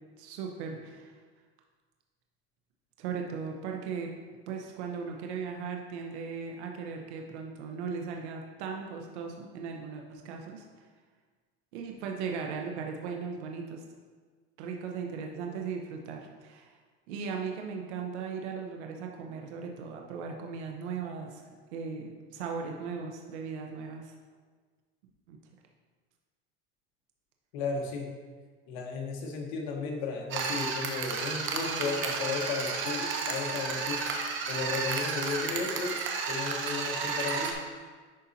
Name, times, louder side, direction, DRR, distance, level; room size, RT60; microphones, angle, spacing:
voice 1, 0.2-1.1 3.0-4.1 4.5-10.6 11.7-13.8 14.6-16.8 17.1-21.4 21.7-24.1 25.3-25.4, right 5 dB, 85° right, 2 dB, 0.9 m, -37 dB
voice 2, 27.5-28.1 28.7-36.0 36.3-37.9, left 4 dB, 80° left, 1 dB, 1.3 m, -34 dB
sound 1, 30.3-37.5, right 5 dB, 35° right, 0.8 m, -32 dB
10.5 x 4.0 x 2.7 m, 1.5 s
supercardioid pair, 140°, 33 cm